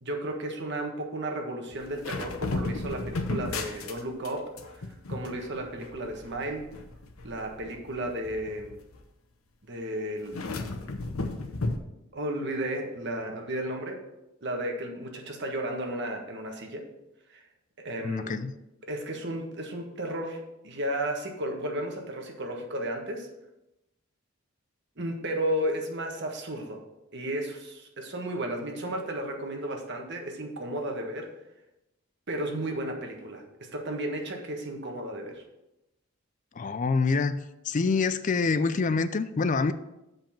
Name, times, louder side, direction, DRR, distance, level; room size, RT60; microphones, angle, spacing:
voice 1, 0.0-6.7 7.2-8.8 9.7-10.7 12.1-14.0 14.4-16.8 17.3-17.4 17.8-18.4 18.8-23.3 25.0-26.8 27.1-31.3 32.3-35.4, right 1 dB, 55° right, 2 dB, 1.5 m, -33 dB
sound 1, 1.7-4.3 4.6-9.0 10.3-11.8, left 2 dB, 90° left, 0.9 m, -34 dB
voice 2, 18.0-18.5 36.6-37.4 37.6-39.7, left 4 dB, 35° left, 13 dB, 0.4 m, -26 dB
7.1 x 5.4 x 7.4 m, 0.93 s
head